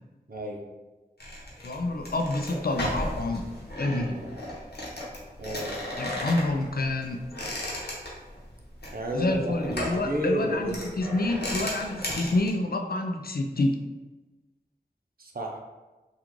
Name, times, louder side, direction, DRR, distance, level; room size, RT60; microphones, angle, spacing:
voice 1, 0.3-0.6 5.4-5.7 8.9-11.0 15.2-15.6, equal, 65° right, 1 dB, 0.6 m, -31 dB
sound 1, 1.2-12.5, left 1 dB, 80° left, 0.8 m, -36 dB
voice 2, 1.6-3.4 3.8-4.2 6.0-7.2 9.1-13.8, left 2 dB, 65° left, 4 dB, 0.4 m, -28 dB
3.6 x 2.4 x 3.0 m, 1.2 s
wide cardioid pair, 45°, 17 cm